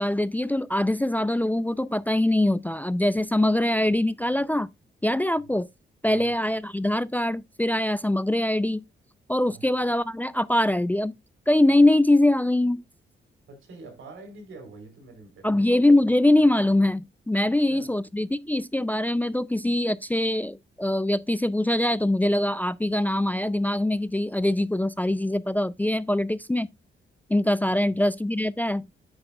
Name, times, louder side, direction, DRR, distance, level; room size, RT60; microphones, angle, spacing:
voice 1, 0.0-4.7 5.0-5.7 6.0-8.8 9.3-11.1 11.5-12.8 15.4-26.7 27.3-28.8, left 1 dB, 10° left, 0.4 m, -23 dB
voice 2, 6.1-6.4 9.5-9.6 13.5-15.7 17.4-17.9 27.7-28.0, right 3 dB, 85° right, 3.7 m, -46 dB
8.9 x 8.9 x 2.3 m
cardioid pair, 75°, 20 cm